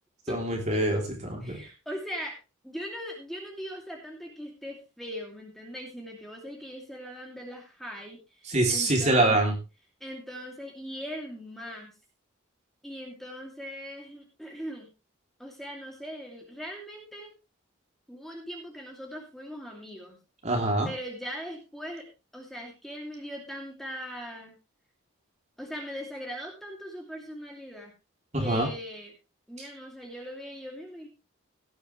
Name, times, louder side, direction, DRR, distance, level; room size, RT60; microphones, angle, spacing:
voice 1, 0.3-1.6 8.4-9.5 20.4-20.9 28.3-28.7 29.6-29.7, right 2 dB, 35° right, 1 dB, 3.2 m, -25 dB
voice 2, 1.4-2.3 2.6-9.4 10.0-11.9 12.8-14.9 15.4-17.3 18.1-20.2 20.8-22.1 22.3-24.5 25.6-27.9 28.4-29.1 29.5-31.1, equal, ahead, -1 dB, 2.7 m, -40 dB
17.5 x 9.1 x 3.3 m, 0.29 s
head